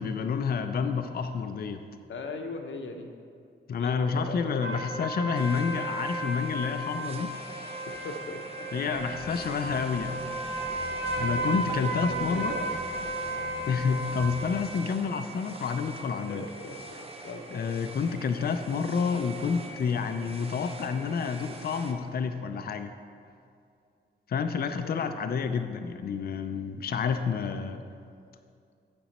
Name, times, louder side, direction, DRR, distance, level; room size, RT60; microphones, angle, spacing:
voice 1, 0.0-1.9 3.7-7.3 8.7-10.2 10.5-10.7 11.2-12.5 13.7-16.4 17.5-22.9 24.3-27.8, left 5 dB, 55° left, 8 dB, 0.4 m, -29 dB
voice 2, 2.1-3.1 3.7-4.9 7.8-9.1 11.4-12.7 16.2-17.7 24.8-25.1, left 3 dB, 80° left, 4 dB, 0.8 m, -40 dB
sound 1, 4.6-14.5, right 2 dB, 65° right, 1.3 m, -34 dB
sound 2, 5.3-21.9, right 2 dB, 30° right, 0.6 m, -44 dB
sound 3, 8.9-14.5, right 1 dB, 45° right, 2.1 m, -45 dB
9.0 x 6.1 x 4.1 m, 2.4 s
wide cardioid pair, 150°, 19 cm